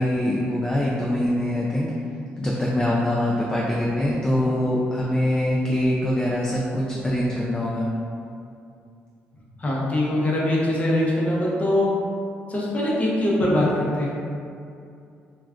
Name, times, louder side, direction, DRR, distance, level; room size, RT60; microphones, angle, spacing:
voice 1, 0.0-1.9 2.4-7.9, left 1 dB, 15° left, -5 dB, 0.4 m, -23 dB
voice 2, 9.6-11.9 12.5-14.1, left 1 dB, 30° left, -5 dB, 0.7 m, -22 dB
2.3 x 2.2 x 3.5 m, 2.5 s
cardioid pair, 90°, 4 cm